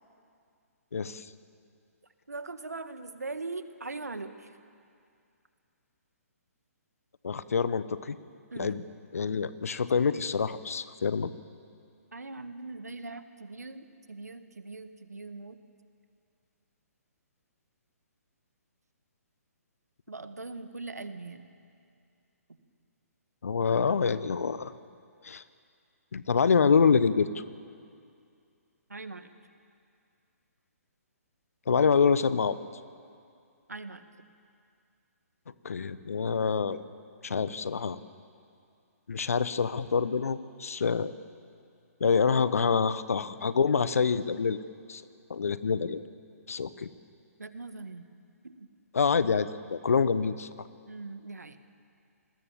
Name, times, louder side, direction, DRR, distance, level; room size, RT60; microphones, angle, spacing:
voice 1, 0.9-1.3 7.2-8.2 8.6-8.8 9.1-11.3 23.4-24.7 25.2-25.4 26.1-27.4 31.7-32.6 35.6-36.8 37.2-38.0 39.1-41.1 42.0-44.6 44.9-45.0 45.3-46.0 46.5-46.9 48.9-50.5, left 5 dB, 65° left, 14 dB, 1.1 m, -26 dB
voice 2, 2.3-4.6 8.5-8.9 12.1-15.6 20.1-21.5 28.9-29.3 33.7-34.0 47.4-48.0 48.4-48.7 50.9-51.6, right 3 dB, 75° right, 9 dB, 1.8 m, -41 dB
28.0 x 20.5 x 7.5 m, 2.4 s
figure-of-eight pair, 130°, 9 cm